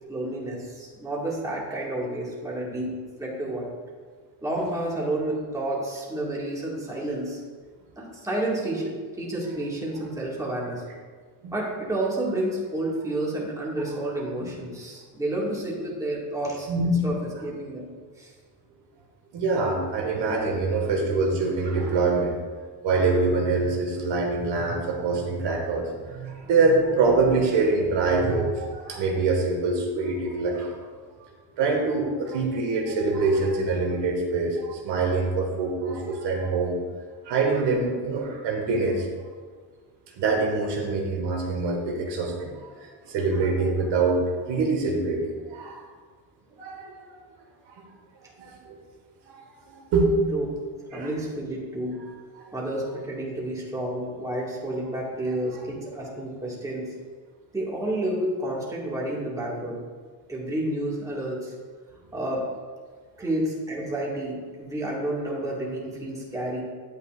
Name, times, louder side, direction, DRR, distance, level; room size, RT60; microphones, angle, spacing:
voice 1, 0.1-2.9 3.2-3.7 4.4-7.4 8.0-10.8 11.5-16.7 17.0-17.9 18.2-18.3 50.3-50.5 50.9-52.0 52.5-56.9 57.5-59.8 60.3-61.5 62.1-62.4 63.2-66.6, right 1 dB, 5° right, -5 dB, 1.9 m, -30 dB
voice 2, 16.7-17.1 19.3-22.3 22.8-30.8 31.2-31.3 31.6-36.8 37.3-39.1 40.2-45.2 45.5-45.8 46.6-47.2 48.4-48.8 49.3-49.4 49.7-50.3 50.9-51.1, right 3 dB, 65° right, 0 dB, 1.8 m, -25 dB
10.5 x 8.4 x 2.5 m, 1.6 s
cardioid pair, 125°, 46 cm